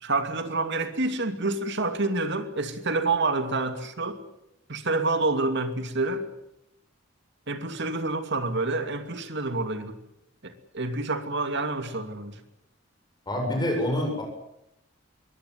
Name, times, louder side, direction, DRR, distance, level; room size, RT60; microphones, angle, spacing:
voice 1, 0.0-4.2 4.7-6.2 7.5-10.0 10.4-12.4, right 3 dB, 60° right, 2.6 m, -28 dB
voice 2, 13.3-14.2, left 1 dB, 20° left, 7.6 m, -26 dB
23.0 x 19.0 x 9.5 m
head